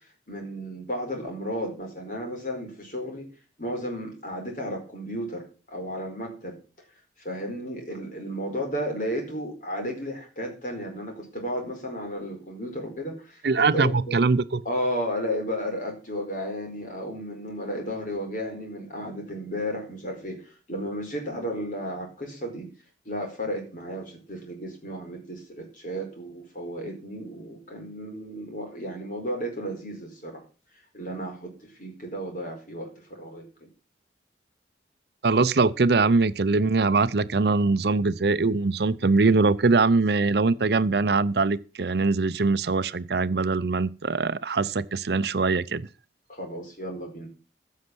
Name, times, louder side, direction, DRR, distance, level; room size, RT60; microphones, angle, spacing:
voice 1, 0.3-3.3 3.6-6.6 7.2-14.2 14.6-22.7 23.0-30.4 30.9-33.7 46.3-47.3, equal, 45° left, 4.7 m, -33 dB
voice 2, 13.4-14.6 35.2-45.9, right 3 dB, 60° right, 0.6 m, -22 dB
15.0 x 6.5 x 6.1 m
head